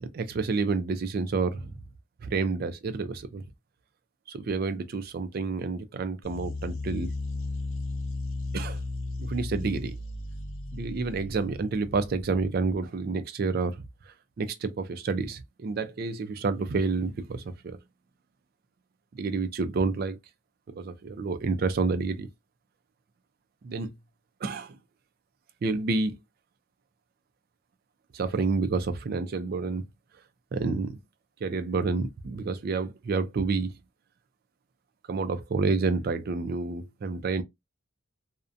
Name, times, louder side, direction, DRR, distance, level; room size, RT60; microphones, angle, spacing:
voice 1, 0.0-1.7 2.2-3.4 4.3-7.1 8.5-8.8 9.2-10.0 10.7-13.8 14.4-17.8 19.2-20.2 20.8-22.3 23.6-23.9 24.4-24.8 25.6-26.1 28.1-29.8 30.5-31.0 31.4-33.7 35.1-37.4, right 4 dB, 45° right, 0.3 m, -29 dB
sound 1, 6.2-12.7, left 2 dB, 80° left, 0.5 m, -35 dB
2.5 x 2.1 x 2.5 m
head